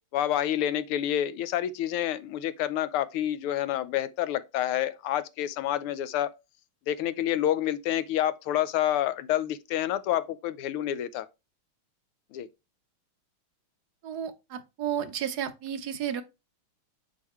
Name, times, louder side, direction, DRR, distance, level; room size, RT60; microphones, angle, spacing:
voice 1, 0.1-6.3 6.9-11.3 12.3-12.5, left 12 dB, 90° left, 1.6 m, -28 dB
voice 2, 14.0-16.2, right 9 dB, 60° right, 1.1 m, -32 dB
8.1 x 4.8 x 3.0 m
omnidirectional pair, 2.4 m